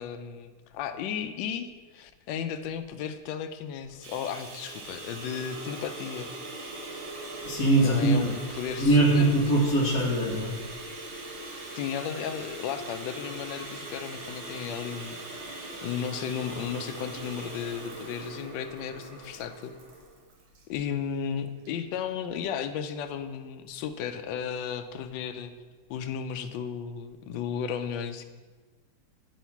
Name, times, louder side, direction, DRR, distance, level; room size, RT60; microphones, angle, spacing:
voice 1, 0.0-6.3 7.8-9.6 11.4-15.4 15.8-19.7 20.7-25.5 25.9-28.2, left 8 dB, 75° left, 9 dB, 1.1 m, -34 dB
sound 1, 3.8-20.2, right 1 dB, 65° right, 1.7 m, -42 dB
Bathtub (filling or washing), 4.0-20.7 21.6-21.7 22.1-22.2, right 3 dB, 85° right, 2.0 m, -45 dB
voice 2, 7.4-8.3 8.8-10.5, right 2 dB, 50° left, -1 dB, 1.2 m, -22 dB
8.8 x 3.1 x 5.7 m, 1.3 s
omnidirectional pair, 2.3 m